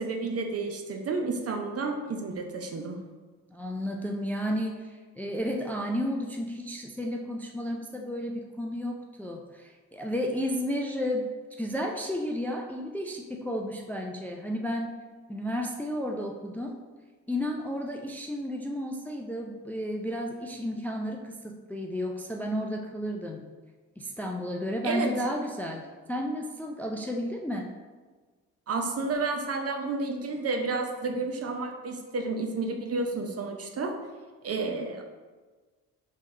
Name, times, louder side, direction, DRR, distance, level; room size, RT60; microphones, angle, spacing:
voice 1, 0.0-3.0 24.8-25.1 28.7-34.0 34.4-35.0, right 3 dB, 45° right, 4 dB, 0.6 m, -31 dB
voice 2, 3.5-11.3 11.6-15.0 15.3-16.8 17.3-23.4 24.0-27.7, equal, 5° left, 2 dB, 0.4 m, -32 dB
3.7 x 3.1 x 3.2 m, 1.4 s
supercardioid pair, 55°, 35 cm